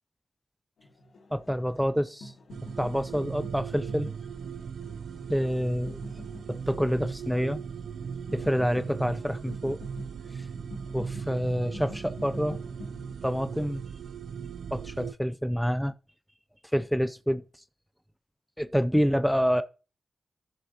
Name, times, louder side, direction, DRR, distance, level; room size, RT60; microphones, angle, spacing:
sound 1, 0.8-13.1, left 1 dB, 80° left, 2.5 m, -47 dB
voice 1, 1.3-2.3 2.8-4.1 5.3-6.0 6.5-7.6 8.3-9.8 10.3-10.4 10.9-12.6 13.2-13.8 14.7-15.9 16.7-17.4 18.6-19.6, equal, ahead, 0.5 m, -27 dB
sound 2, 2.5-15.1, right 7 dB, 90° right, 0.4 m, -38 dB
14.5 x 6.3 x 2.9 m
cardioid pair, 55°, 0 cm